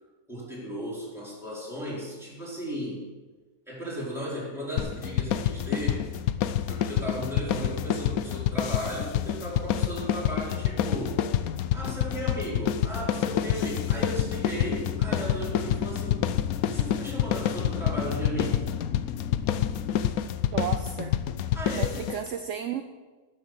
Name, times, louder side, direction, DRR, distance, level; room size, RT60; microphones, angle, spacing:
voice 1, 0.3-3.0 3.7-6.1 6.7-11.2 11.7-16.2 16.6-18.7 21.5-22.0, equal, ahead, -7 dB, 4.9 m, -35 dB
sound 1, 4.8-22.2, left 10 dB, 75° left, 1.1 m, -28 dB
sound 2, 13.1-20.0, left 8 dB, 55° left, 1.3 m, -37 dB
voice 2, 20.5-21.2 21.7-22.8, right 9 dB, 60° right, 8 dB, 0.9 m, -33 dB
12.5 x 8.0 x 6.5 m, 1.3 s
omnidirectional pair, 1.6 m